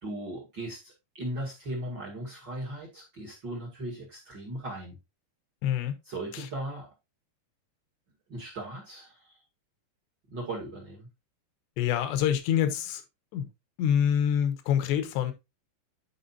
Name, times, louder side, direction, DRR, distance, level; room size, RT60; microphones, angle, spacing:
voice 1, 0.0-5.0 6.1-6.9 8.3-9.4 10.3-11.1, right 1 dB, 40° right, 1.5 m, -38 dB
voice 2, 5.6-5.9 6.3-6.5 11.8-13.0 13.3-13.5 13.8-15.3, left 9 dB, 75° left, 3.2 m, -26 dB
11.5 x 4.9 x 2.7 m
omnidirectional pair, 5.1 m